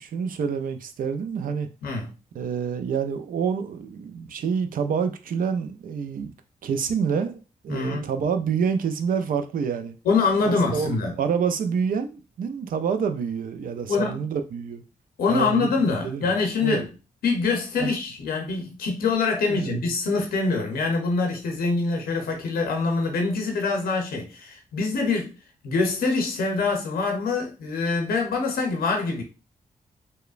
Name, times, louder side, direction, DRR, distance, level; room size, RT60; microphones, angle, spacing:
voice 1, 0.0-1.7 2.3-6.3 6.6-10.0 10.4-14.8 15.3-16.3 16.6-16.8 17.8-17.9 19.4-19.8, right 6 dB, 70° right, 0.4 m, -27 dB
voice 2, 1.8-2.1 7.7-8.1 10.0-11.1 13.9-14.2 15.2-16.9 17.2-25.3 25.6-29.2, left 4 dB, 85° left, 0.7 m, -24 dB
2.9 x 2.1 x 2.4 m
supercardioid pair, 50°, 15 cm